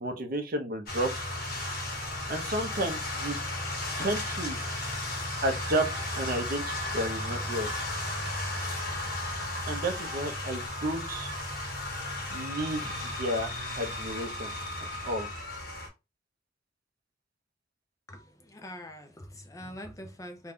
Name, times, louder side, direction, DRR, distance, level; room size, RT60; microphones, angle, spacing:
voice 1, 0.0-1.1 2.3-3.4 4.0-4.6 5.4-7.8 9.6-11.3 12.3-14.5 14.8-15.3, right 1 dB, 50° right, 0.6 m, -32 dB
sound 1, 0.9-15.9, left 1 dB, 50° left, 1.1 m, -34 dB
voice 2, 18.1-20.5, left 1 dB, 20° left, 0.5 m, -44 dB
2.5 x 2.2 x 3.4 m
head